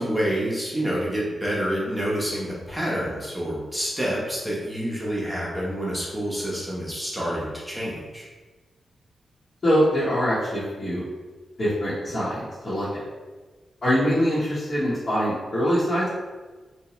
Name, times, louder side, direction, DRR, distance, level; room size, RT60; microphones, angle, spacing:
voice 1, 0.0-8.3, equal, 5° right, -5 dB, 0.7 m, -28 dB
voice 2, 9.6-11.0 11.6-12.9 13.8-16.1, equal, 45° left, -10 dB, 0.9 m, -23 dB
2.8 x 2.1 x 3.0 m, 1.3 s
cardioid pair, 80°, 0 cm